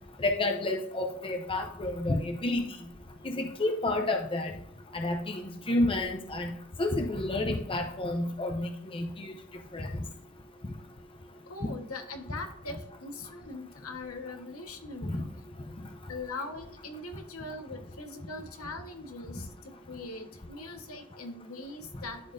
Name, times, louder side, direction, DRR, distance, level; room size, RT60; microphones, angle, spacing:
voice 1, 0.2-2.7 3.2-4.5 4.9-5.4 5.7-6.5 6.8-9.3 9.7-9.9 15.0-15.2, left 2 dB, 25° left, 4 dB, 0.7 m, -30 dB
voice 2, 11.5-15.2 16.1-22.3, left 2 dB, 75° left, 5 dB, 1.3 m, -41 dB
12.0 x 4.3 x 2.6 m, 0.69 s
head